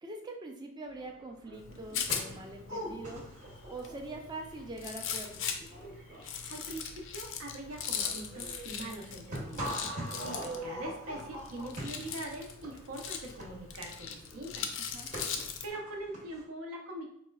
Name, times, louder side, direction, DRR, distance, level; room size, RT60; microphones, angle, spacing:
voice 1, 0.0-3.3 3.7-5.5 14.9-15.1, right 2 dB, 20° right, 2 dB, 0.4 m, -43 dB
sound 1, 1.1-1.2 1.3-16.4, right 1 dB, 35° right, 0.8 m, -43 dB
Rattle, 1.5-15.7, left 7 dB, 60° left, 0.4 m, -40 dB
voice 2, 6.3-14.7 15.6-17.1, right 1 dB, 70° right, 1 dB, 0.6 m, -43 dB
4.2 x 2.1 x 2.3 m, 0.71 s
head